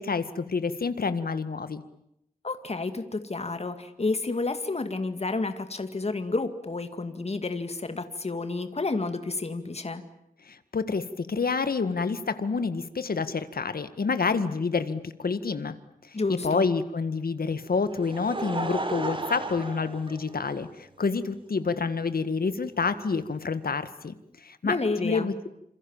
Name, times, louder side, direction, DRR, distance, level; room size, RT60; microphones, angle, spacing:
voice 1, 0.0-1.8 10.5-15.8 16.0-16.2 16.4-24.1 24.4-24.8 25.0-25.3, left 4 dB, 75° left, 12 dB, 1.9 m, -28 dB
voice 2, 2.4-10.0 16.1-16.7 24.6-25.3, left 3 dB, 40° left, 9 dB, 2.3 m, -30 dB
Laughter, 17.6-20.8 21.6-21.7 23.2-23.3, right 2 dB, 35° right, 3.9 m, -34 dB
27.5 x 27.5 x 7.4 m, 0.79 s
wide cardioid pair, 105°, 16 cm